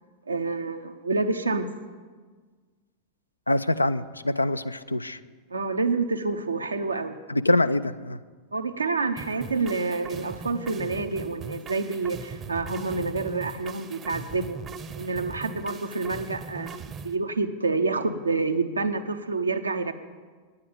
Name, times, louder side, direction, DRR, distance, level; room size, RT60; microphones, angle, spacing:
voice 1, 0.3-1.7 5.5-7.2 8.5-14.6 14.9-16.7 17.0-19.9, right 3 dB, 80° right, 7 dB, 0.8 m, -28 dB
voice 2, 3.5-5.2 7.3-8.2, left 1 dB, 85° left, 13 dB, 0.4 m, -24 dB
sound 1, 9.2-17.1, right 5 dB, 25° right, 0.7 m, -40 dB
9.9 x 8.9 x 8.8 m, 1.5 s
figure-of-eight pair, 90°, 0 cm